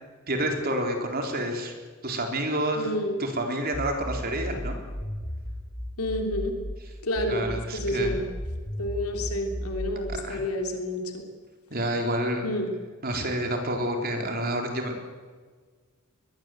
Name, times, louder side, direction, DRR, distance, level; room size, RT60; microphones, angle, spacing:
voice 1, 0.3-1.7 2.0-2.9 3.2-4.8 7.3-8.1 10.2-10.4 11.7-12.5 13.0-15.0, right 1 dB, 45° right, 3 dB, 4.0 m, -28 dB
voice 2, 2.7-3.2 6.0-6.5 7.0-8.2 8.8-11.2 12.4-12.7, left 1 dB, 80° left, 4 dB, 3.3 m, -29 dB
sound 1, 3.7-6.7 7.1-10.2, equal, 25° left, 3.1 m, -35 dB
21.5 x 21.0 x 8.0 m, 1.5 s
head